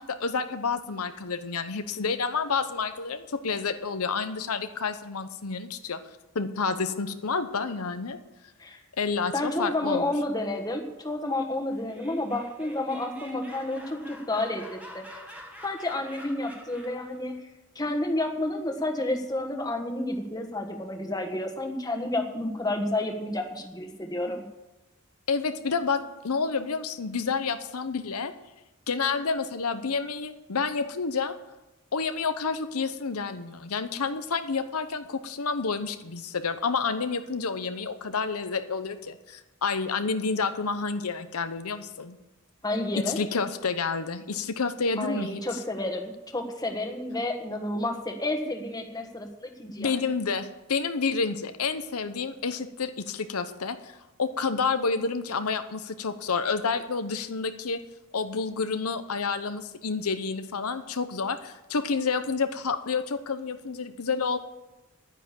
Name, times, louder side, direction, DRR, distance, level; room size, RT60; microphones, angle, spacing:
voice 1, 0.0-6.0 6.3-8.2 9.0-10.1 25.3-28.3 28.9-31.4 31.9-42.2 43.1-45.4 49.8-57.8 58.1-64.4, left 5 dB, 90° left, 9 dB, 0.9 m, -29 dB
voice 2, 9.3-15.2 15.6-17.3 17.7-24.4 42.6-43.2 45.0-49.9, left 1 dB, 15° left, 4 dB, 1.4 m, -30 dB
Laughter, 11.7-17.1, equal, 5° right, 1.5 m, -46 dB
10.5 x 9.9 x 7.5 m, 0.99 s
head